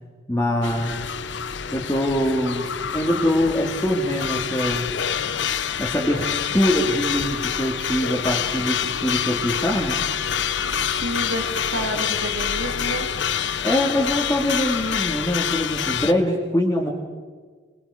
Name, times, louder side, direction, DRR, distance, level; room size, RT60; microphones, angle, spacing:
voice 1, 0.3-1.1 1.7-2.6 2.9-5.0 5.8-6.3 6.5-10.0 13.6-16.9, left 1 dB, 15° left, -4 dB, 2.3 m, -23 dB
sound 1, 0.6-16.1, left 8 dB, 65° left, 0.8 m, -26 dB
voice 2, 10.6-13.1, right 1 dB, 80° right, 4 dB, 3.1 m, -30 dB
26.0 x 21.0 x 5.0 m, 1.5 s
head